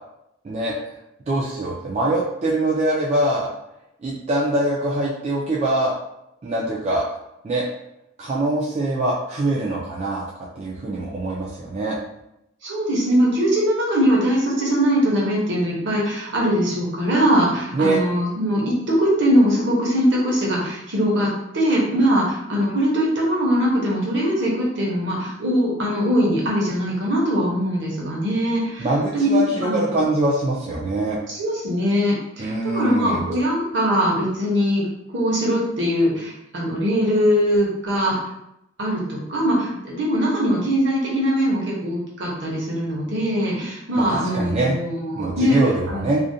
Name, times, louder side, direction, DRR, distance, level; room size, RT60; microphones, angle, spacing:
voice 1, 1.3-3.5 4.0-5.9 6.4-7.1 7.4-7.6 8.2-10.2 10.6-12.0 17.7-18.0 28.8-31.2 32.4-33.3 44.0-44.8 45.1-46.2, right 2 dB, 35° right, -5 dB, 0.3 m, -23 dB
voice 2, 12.6-21.3 21.5-28.9 29.1-30.0 31.3-38.2 38.8-45.6 45.9-46.1, equal, 65° right, -4 dB, 0.8 m, -21 dB
2.4 x 2.1 x 2.6 m, 0.84 s
head